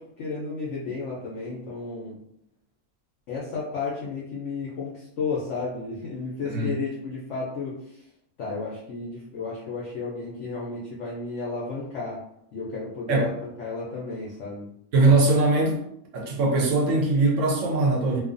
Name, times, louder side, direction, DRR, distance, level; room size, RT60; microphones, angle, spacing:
voice 1, 0.0-2.2 3.3-8.0 8.4-12.2 12.5-14.7, left 4 dB, 65° left, -5 dB, 0.8 m, -33 dB
voice 2, 14.9-15.8 16.1-18.2, right 2 dB, 65° right, -1 dB, 0.8 m, -21 dB
2.6 x 2.3 x 2.5 m, 0.74 s
omnidirectional pair, 1.6 m